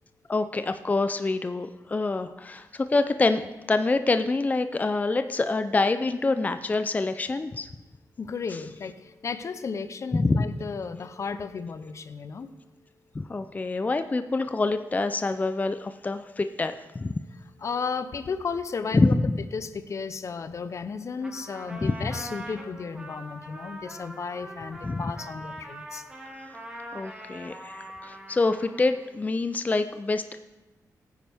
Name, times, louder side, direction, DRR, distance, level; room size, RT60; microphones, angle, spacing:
voice 1, 0.3-7.7 10.1-10.5 13.1-17.1 18.9-19.4 21.8-22.1 24.8-25.0 26.4-26.5 26.9-30.4, left 3 dB, 25° left, 10 dB, 0.5 m, -26 dB
voice 2, 8.2-12.5 17.6-19.1 19.5-26.1, left 5 dB, 50° left, 11 dB, 0.8 m, -34 dB
Trumpet, 21.2-29.1, right 1 dB, 15° right, 2.1 m, -42 dB
16.5 x 9.5 x 3.5 m, 1.1 s
cardioid pair, 90°, 7 cm